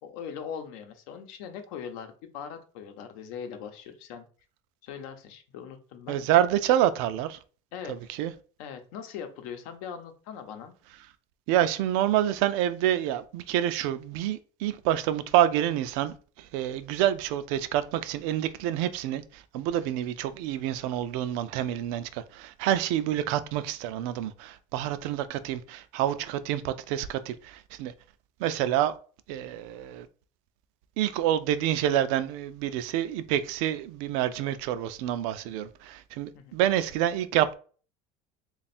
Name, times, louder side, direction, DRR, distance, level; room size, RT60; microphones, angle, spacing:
voice 1, 0.0-4.3 4.8-6.2 7.7-7.9 8.6-10.7 36.3-36.6, left 7 dB, 80° left, 0.8 m, -40 dB
voice 2, 6.1-7.4 7.9-8.3 11.5-27.9 28.4-28.9 29.3-30.1 31.0-37.6, right 12 dB, 75° right, 0.4 m, -27 dB
3.3 x 2.4 x 4.2 m
supercardioid pair, 130°, 17 cm